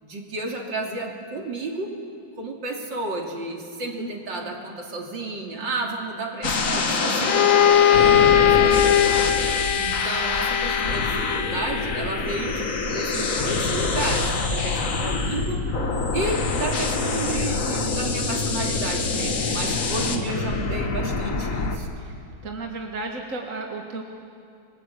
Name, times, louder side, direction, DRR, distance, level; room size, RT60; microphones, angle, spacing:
voice 1, 0.0-1.9 2.4-9.2 9.8-15.7 16.1-22.0, right 2 dB, 55° right, 1 dB, 3.6 m, -32 dB
sound 1, 6.4-21.8, left 3 dB, 40° left, 2.0 m, -25 dB
Bowed string instrument, 7.2-12.0, left 10 dB, 70° left, 1.9 m, -20 dB
voice 2, 20.1-20.4 22.0-22.1 22.4-24.0, right 3 dB, 40° right, 1 dB, 2.1 m, -33 dB
29.5 x 22.5 x 8.4 m, 2.4 s
omnidirectional pair, 2.4 m